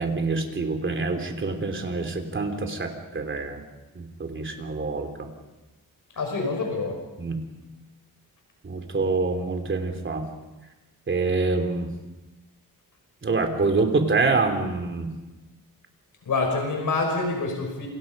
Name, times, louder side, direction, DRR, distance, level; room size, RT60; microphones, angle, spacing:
voice 1, 0.0-3.6 3.9-5.3 7.2-7.4 8.6-10.2 11.1-11.9 13.2-15.1, right 3 dB, 35° right, 5 dB, 3.1 m, -26 dB
voice 2, 6.2-7.0 16.3-17.9, left 3 dB, 65° left, 2 dB, 5.9 m, -26 dB
28.5 x 27.0 x 5.4 m, 1.1 s
wide cardioid pair, 155°, 34 cm